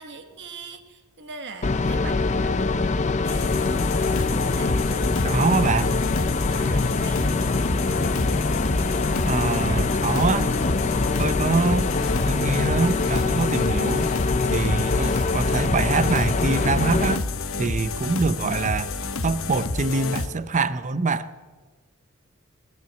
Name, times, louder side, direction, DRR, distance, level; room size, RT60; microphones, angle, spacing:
voice 1, 0.0-3.8 4.4-5.5 6.5-7.5, right 4 dB, 55° right, 9 dB, 1.3 m, -42 dB
sound 1, 1.6-17.2, left 3 dB, 35° left, 0.6 m, -24 dB
sound 2, 3.2-20.3, left 3 dB, 65° left, 1.1 m, -30 dB
voice 2, 5.2-6.0 9.2-10.5 11.2-11.9 12.3-14.1 14.5-17.3 17.6-18.9 19.2-21.3, right 4 dB, 35° right, 15 dB, 0.6 m, -24 dB
20.0 x 9.3 x 7.8 m, 1.4 s
head